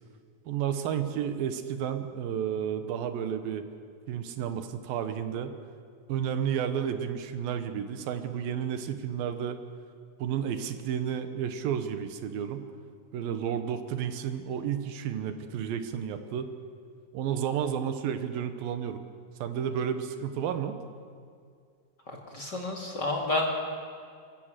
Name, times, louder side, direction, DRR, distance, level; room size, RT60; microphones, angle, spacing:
voice 1, 0.5-3.7 4.1-5.5 6.1-9.6 10.2-12.6 13.1-16.5 17.1-19.0 19.4-20.8, right 8 dB, 80° right, 8 dB, 2.8 m, -31 dB
voice 2, 22.1-23.5, left 2 dB, 35° left, 1 dB, 2.3 m, -30 dB
26.5 x 15.5 x 7.5 m, 2.2 s
omnidirectional pair, 4.2 m